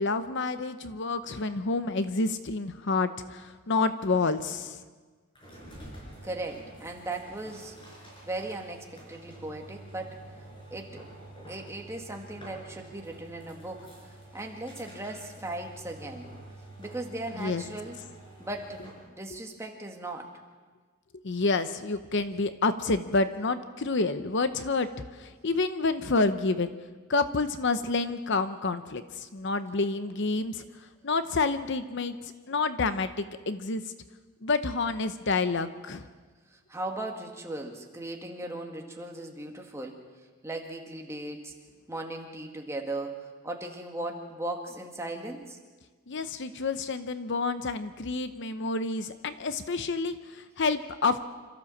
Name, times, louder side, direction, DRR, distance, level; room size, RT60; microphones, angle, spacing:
voice 1, 0.0-4.8 17.4-17.6 21.2-24.9 25.2-26.7 27.1-30.6 31.0-33.1 33.5-33.8 34.4-36.1 46.1-51.2, left 3 dB, 55° left, 11 dB, 0.8 m, -28 dB
sound 1, 5.3-19.1, right 1 dB, 25° left, 5.4 m, -48 dB
voice 2, 6.2-7.7 8.3-10.2 10.7-11.0 11.5-16.3 16.8-18.0 18.4-20.4 36.5-40.0 40.4-41.5 41.9-45.6, right 2 dB, 15° right, 2 dB, 2.0 m, -38 dB
26.5 x 14.0 x 7.3 m, 1.4 s
head